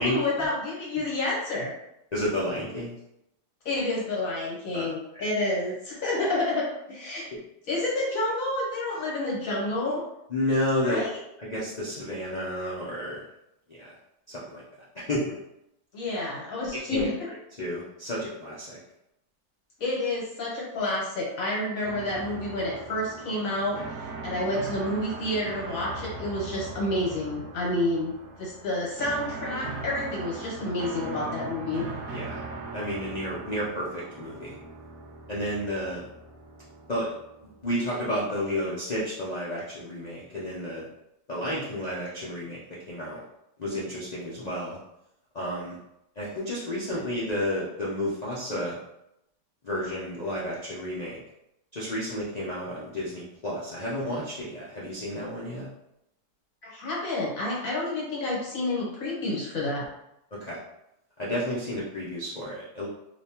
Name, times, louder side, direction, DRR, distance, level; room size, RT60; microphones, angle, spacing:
voice 1, 0.0-1.7 3.6-7.3 7.7-10.0 10.8-11.1 15.9-17.3 19.8-28.1 28.4-31.9 56.6-59.9, left 2 dB, 60° left, -4 dB, 1.1 m, -29 dB
voice 2, 2.1-2.9 4.7-4.9 7.3-7.4 10.3-11.0 11.4-13.2 13.8-13.9 14.3-14.6 14.9-15.4 16.9-18.8 32.1-32.4 32.7-34.6 35.3-36.1 36.9-37.1 37.6-40.8 41.3-42.6 42.9-43.2 43.6-44.8 45.3-45.8 46.2-48.8 49.6-51.2 51.7-55.7 60.4-60.6 61.2-62.9, left 1 dB, 85° left, -7 dB, 0.3 m, -31 dB
sound 1, 21.8-37.8, right 3 dB, 65° right, 0.7 m, -40 dB
3.4 x 2.9 x 2.8 m, 0.83 s
omnidirectional pair, 1.8 m